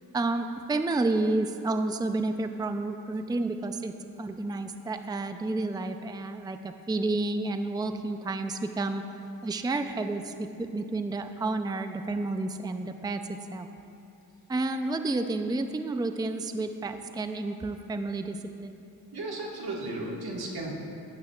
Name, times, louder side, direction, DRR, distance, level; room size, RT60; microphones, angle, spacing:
voice 1, 0.1-3.9 4.2-9.0 9.4-13.2 13.5-13.7 14.5-18.8, right 2 dB, 10° right, 7 dB, 0.5 m, -30 dB
voice 2, 19.1-20.7, right 2 dB, 80° right, -3 dB, 1.8 m, -35 dB
15.5 x 11.5 x 2.4 m, 2.6 s
cardioid pair, 65°, 37 cm